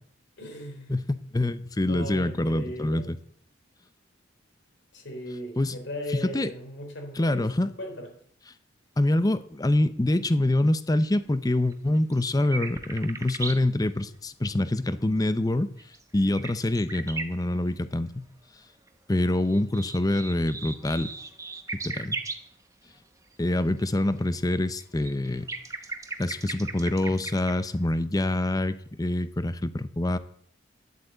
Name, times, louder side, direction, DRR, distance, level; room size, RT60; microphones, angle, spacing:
voice 1, 0.4-0.9 1.8-3.1 4.9-7.4 7.8-8.1, equal, 65° left, 4 dB, 3.5 m, -37 dB
voice 2, 0.9-3.2 5.6-5.8 6.1-6.5 7.2-7.7 9.0-15.7 16.1-18.3 19.1-21.1 21.7-22.2 23.4-25.5 26.2-30.2, left 1 dB, 20° left, 13 dB, 0.6 m, -25 dB
sound 1, 11.7-13.6 15.5-17.7 18.9-22.5 23.8-27.7 27.9-28.0, right 3 dB, 15° right, 1.0 m, -37 dB
11.0 x 8.3 x 7.9 m, 0.67 s
head